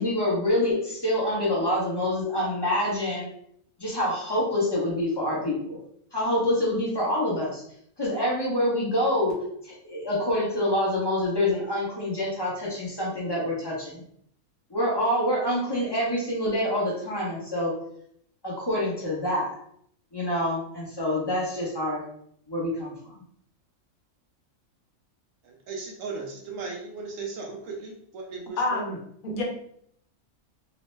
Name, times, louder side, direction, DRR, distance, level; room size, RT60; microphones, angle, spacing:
voice 1, 0.0-3.3 3.8-5.8 6.1-7.6 8.0-9.4 9.6-14.0 14.7-17.7 18.4-19.5 20.1-22.0 22.5-23.1, left 1 dB, 20° left, -6 dB, 0.8 m, -26 dB
voice 2, 25.4-28.8, right 4 dB, 70° right, 0 dB, 0.9 m, -37 dB
voice 3, 28.6-29.0 29.2-29.4, left 2 dB, 70° left, -1 dB, 1.1 m, -27 dB
3.0 x 2.1 x 3.1 m, 0.68 s
omnidirectional pair, 1.5 m